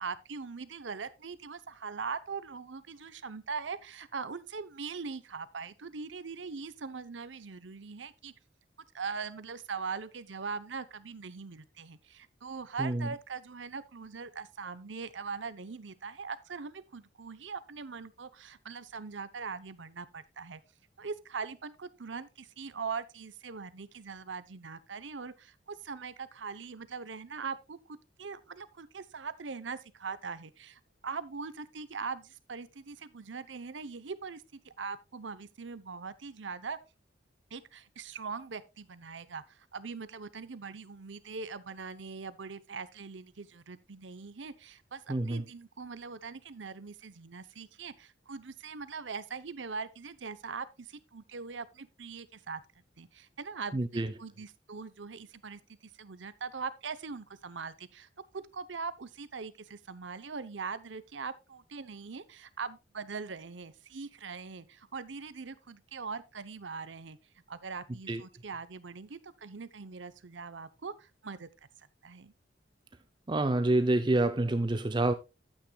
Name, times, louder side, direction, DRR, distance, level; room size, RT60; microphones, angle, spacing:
voice 1, 0.0-8.3 8.9-20.6 21.0-36.8 37.5-52.6 53.0-55.6 56.0-58.1 58.3-67.2 67.5-71.5 72.0-72.3, right 5 dB, 80° right, 0.8 m, -41 dB
voice 2, 12.8-13.1 45.1-45.4 53.7-54.1 68.1-68.2 73.3-75.1, right 2 dB, 25° right, 0.5 m, -27 dB
11.5 x 9.0 x 2.3 m
head